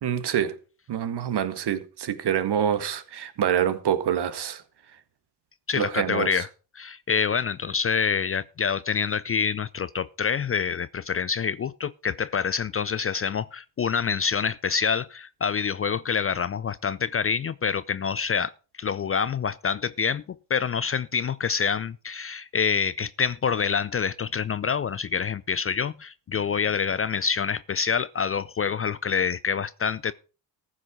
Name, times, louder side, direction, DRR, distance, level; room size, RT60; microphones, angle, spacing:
voice 1, 0.0-0.5 0.9-4.6 5.8-6.4, right 9 dB, 50° right, 1.8 m, -26 dB
voice 2, 5.7-6.5 6.7-18.5 18.8-20.2 20.5-30.1, left 6 dB, 30° left, 0.5 m, -26 dB
14.5 x 6.1 x 6.1 m
hypercardioid pair, 55°, 50 cm